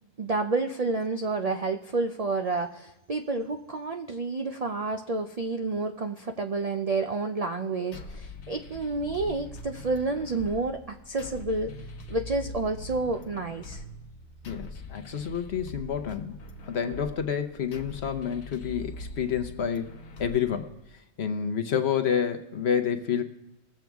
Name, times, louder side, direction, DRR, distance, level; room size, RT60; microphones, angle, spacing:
voice 1, 0.2-11.7 12.1-13.8, right 3 dB, 60° right, 5 dB, 0.4 m, -29 dB
sound 1, 7.9-20.9, left 2 dB, 75° left, 1.4 m, -43 dB
sound 2, 8.7-14.9, right 5 dB, 90° right, 2.4 m, -49 dB
voice 2, 14.4-16.3 16.6-19.9 20.2-20.7 21.2-23.2, left 8 dB, 55° left, 7 dB, 1.0 m, -29 dB
20.0 x 7.6 x 3.5 m, 0.97 s
omnidirectional pair, 1.4 m